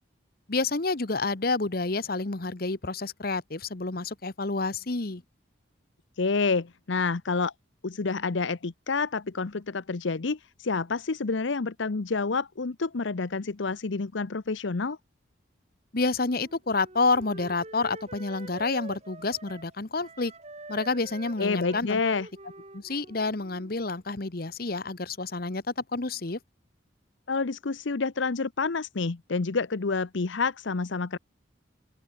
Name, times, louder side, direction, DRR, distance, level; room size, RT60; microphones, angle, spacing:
voice 1, 0.5-5.2 15.9-20.3 20.7-22.0 22.7-26.4, left 3 dB, 50° left, 1.1 m, -29 dB
voice 2, 6.2-7.5 7.8-15.0 21.4-22.3 27.3-31.2, left 4 dB, 70° left, 0.8 m, -28 dB
Wind instrument woodwind instrument, 16.2-19.7 20.0-23.9, right 2 dB, 35° right, 3.9 m, -46 dB
open air
head